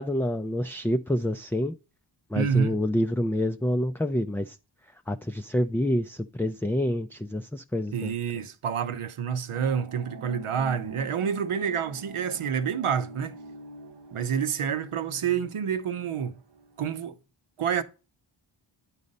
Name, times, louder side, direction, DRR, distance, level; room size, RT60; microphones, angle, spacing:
voice 1, 0.0-1.7 2.3-4.6 5.1-8.1, left 1 dB, 5° left, 0.3 m, -27 dB
voice 2, 2.3-2.7 7.9-13.4 14.1-16.4 16.8-17.2 17.6-17.8, right 7 dB, 85° right, 0.8 m, -28 dB
sound 1, 9.5-16.9, right 2 dB, 55° right, 0.8 m, -46 dB
9.9 x 4.1 x 5.3 m
cardioid pair, 50°, 50 cm